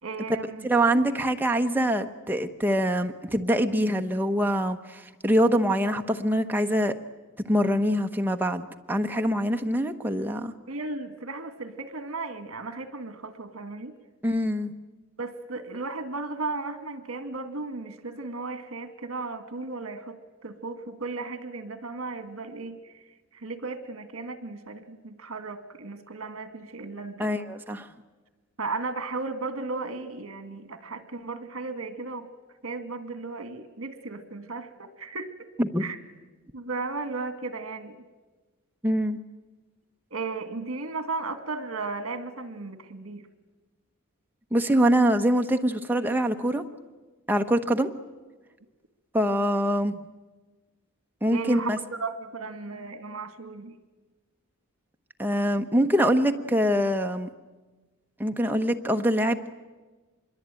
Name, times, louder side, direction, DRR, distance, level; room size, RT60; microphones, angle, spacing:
voice 1, 0.0-0.7 1.1-1.2 10.7-13.9 15.2-22.8 23.3-27.3 28.6-32.3 32.6-35.3 35.8-36.0 36.5-38.0 40.1-43.2 51.3-51.7 52.0-53.8, right 3 dB, 70° right, 10 dB, 2.1 m, -35 dB
voice 2, 0.6-6.9 7.5-10.5 14.2-14.7 27.2-27.9 35.6-35.9 38.8-39.2 44.5-46.6 47.3-47.9 49.1-50.0 51.2-51.8 55.2-57.3 58.2-59.5, equal, 10° right, 5 dB, 1.0 m, -24 dB
25.5 x 22.0 x 9.1 m, 1.3 s
head